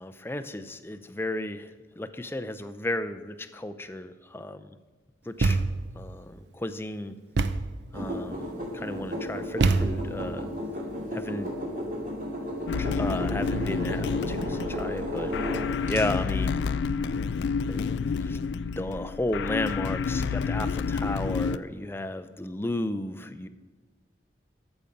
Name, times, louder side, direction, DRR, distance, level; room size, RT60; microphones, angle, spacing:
voice 1, 0.0-1.7 2.0-4.7 5.3-5.6 6.0-7.2 7.9-10.5 11.1-11.5 12.8-15.4 15.9-16.6 17.6-18.0 18.3-18.4 18.8-23.5, left 1 dB, 15° left, 10 dB, 0.5 m, -33 dB
Thump thud, 5.4-6.0 7.4-7.8 9.6-10.3, right 3 dB, 70° right, 0.6 m, -25 dB
sound 1, 7.9-16.0, equal, 45° right, 2.5 m, -33 dB
sound 2, 12.7-21.6, left 5 dB, 75° left, 0.4 m, -29 dB
13.5 x 7.1 x 5.2 m, 1.4 s
head